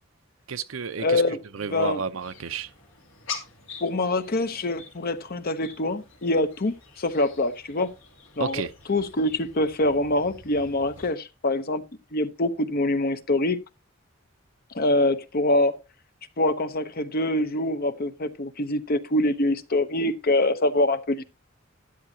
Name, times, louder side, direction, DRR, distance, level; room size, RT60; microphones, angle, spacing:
voice 1, 0.5-1.2 1.5-2.7 8.4-8.7, right 5 dB, 80° right, 0.7 m, -31 dB
voice 2, 1.0-1.4 1.7-2.0 3.8-7.9 8.4-8.6 8.9-11.8 12.1-13.6 14.7-15.8 16.4-21.2, left 2 dB, 50° left, 0.9 m, -24 dB
sound 1, 2.2-11.1, left 5 dB, 75° left, 2.9 m, -44 dB
12.5 x 10.0 x 2.8 m
head